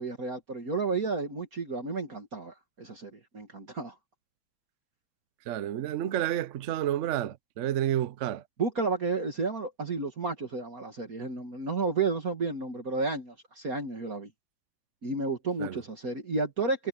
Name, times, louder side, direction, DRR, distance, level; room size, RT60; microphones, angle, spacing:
voice 1, 0.0-3.9 8.6-14.3 15.0-16.9, right 3 dB, 45° right, 2.6 m, -32 dB
voice 2, 5.5-8.4 15.6-15.8, right 12 dB, 70° right, 0.7 m, -30 dB
omnidirectional pair, 2.1 m